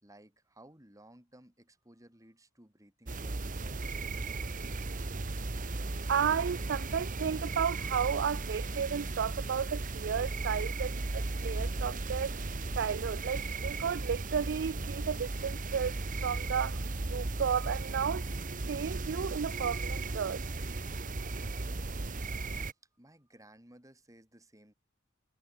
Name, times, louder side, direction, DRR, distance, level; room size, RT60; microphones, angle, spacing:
voice 1, 0.0-5.2 11.7-11.8 22.6-24.7, right 1 dB, 15° right, 5.0 m, -59 dB
sound 1, 3.1-22.7, right 2 dB, 40° right, 1.1 m, -36 dB
voice 2, 6.1-12.4 12.7-18.3 18.7-20.4, right 7 dB, 55° right, 0.4 m, -33 dB
head